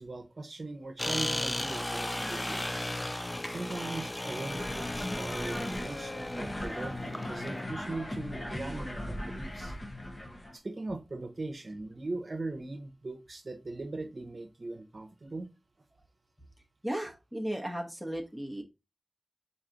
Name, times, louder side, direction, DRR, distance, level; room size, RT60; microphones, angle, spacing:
voice 1, 0.0-2.7 3.5-9.7 10.5-15.5, right 2 dB, 60° right, 0.8 m, -40 dB
sound 1, 1.0-7.6, left 1 dB, 20° left, 0.4 m, -35 dB
sound 2, 4.5-10.6, left 1 dB, 40° left, 1.2 m, -38 dB
voice 2, 16.8-18.6, right 1 dB, 5° left, 1.1 m, -35 dB
4.2 x 3.2 x 3.7 m
wide cardioid pair, 80°, 0 cm